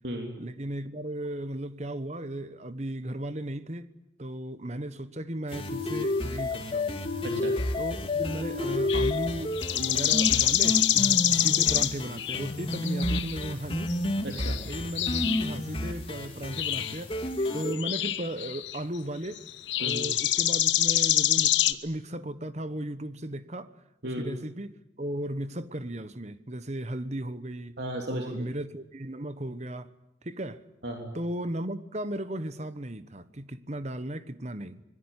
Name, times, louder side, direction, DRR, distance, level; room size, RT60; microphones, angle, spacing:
voice 1, 0.4-3.9 4.2-7.0 7.8-14.0 14.6-17.2 17.5-19.4 19.8-23.7 24.0-27.8 28.1-29.9 30.2-30.6 31.1-34.8, right 1 dB, 35° right, 1.2 m, -36 dB
sound 1, 5.5-17.7, left 1 dB, 30° left, 2.8 m, -30 dB
voice 2, 7.2-7.5 14.2-14.6 19.8-20.0 24.0-24.3 27.8-28.5 30.8-31.1, right 1 dB, 60° right, 3.3 m, -35 dB
sound 2, 8.9-9.2 9.6-12.4 12.7-13.5 13.9-14.0 14.3-15.5 16.5-17.0 17.6-18.8 19.4-21.7, left 13 dB, 75° left, 1.1 m, -26 dB
25.5 x 21.0 x 10.0 m
head